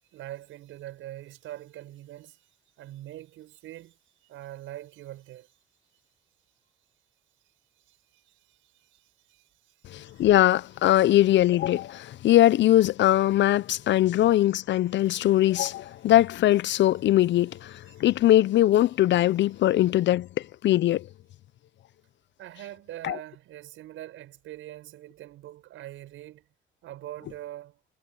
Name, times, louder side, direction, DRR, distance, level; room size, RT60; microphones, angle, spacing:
voice 1, 0.1-2.5 2.8-5.5 7.9-10.2 17.9-18.0 22.4-26.5 26.8-27.8, right 14 dB, 85° right, 6.7 m, -43 dB
voice 2, 9.9-21.1 23.0-23.2, left 13 dB, 65° left, 0.5 m, -21 dB
cardioid pair, 90°, 20 cm